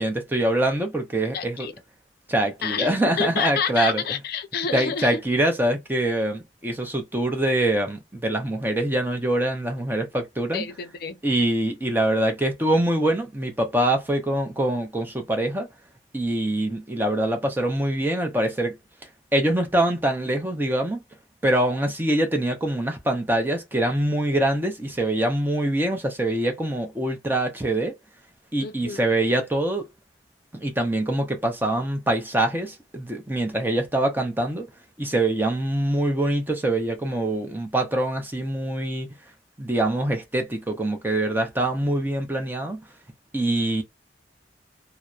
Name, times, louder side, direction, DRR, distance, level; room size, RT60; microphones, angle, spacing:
voice 1, 0.0-1.7 2.3-4.0 4.7-10.6 11.2-15.7 16.1-18.7 19.3-21.0 21.4-27.9 28.5-29.9 30.5-34.7 35.0-39.1 39.6-42.8 43.3-43.8, right 1 dB, 10° right, 0.6 m, -24 dB
voice 2, 1.3-1.7 2.6-5.2 10.5-11.2 28.6-29.0, left 6 dB, 60° left, 0.5 m, -29 dB
2.7 x 2.0 x 2.3 m
head